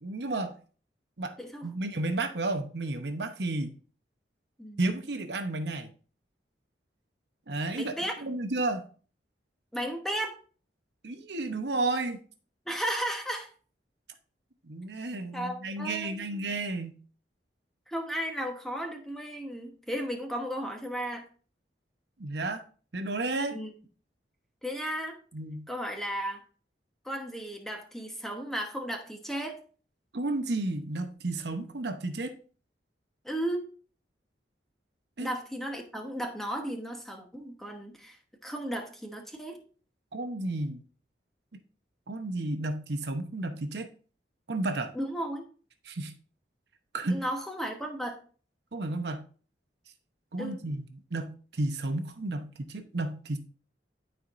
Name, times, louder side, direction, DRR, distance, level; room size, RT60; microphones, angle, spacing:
voice 1, 0.0-0.6 1.2-1.3 1.6-3.7 4.8-5.9 7.5-7.9 8.2-8.9 11.0-12.2 14.6-17.0 22.2-22.6 22.9-23.5 25.3-25.7 30.1-32.3 35.2-35.3 40.1-40.8 42.1-43.9 44.5-44.9 45.9-46.1 46.9-47.2 48.7-49.2 50.3-50.8 51.1-53.4, right 2 dB, 65° right, 0.9 m, -32 dB
voice 2, 7.7-8.1 9.7-10.4 12.7-13.5 15.3-16.4 17.9-21.3 23.5-23.7 24.6-25.2 25.7-26.4 27.0-29.6 33.2-33.6 35.2-38.2 38.4-39.6 44.9-45.4 47.1-48.2 50.4-50.6, equal, ahead, 1.1 m, -34 dB
12.5 x 4.4 x 2.5 m
head